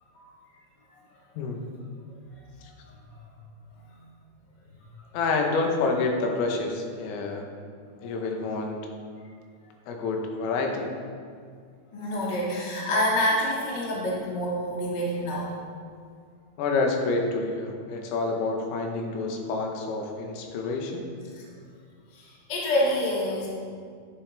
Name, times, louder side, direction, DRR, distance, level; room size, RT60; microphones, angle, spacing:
voice 1, 5.1-7.5 8.0-8.8 9.9-10.9 16.6-21.1, left 3 dB, 80° left, 2 dB, 3.5 m, -28 dB
voice 2, 11.9-15.5 21.3-21.4 22.1-23.5, equal, 65° left, -6 dB, 1.0 m, -27 dB
12.0 x 8.9 x 3.4 m, 2.1 s
omnidirectional pair, 6.0 m